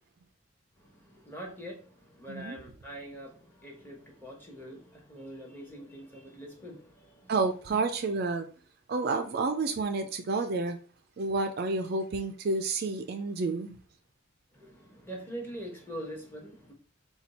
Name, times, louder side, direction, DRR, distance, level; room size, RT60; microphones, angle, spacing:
voice 1, 0.8-7.3 14.5-16.7, right 1 dB, 10° left, 1.1 m, -44 dB
voice 2, 7.3-8.5 8.9-10.8 11.2-13.8, right 3 dB, 50° right, 0.4 m, -30 dB
4.3 x 2.3 x 4.1 m
head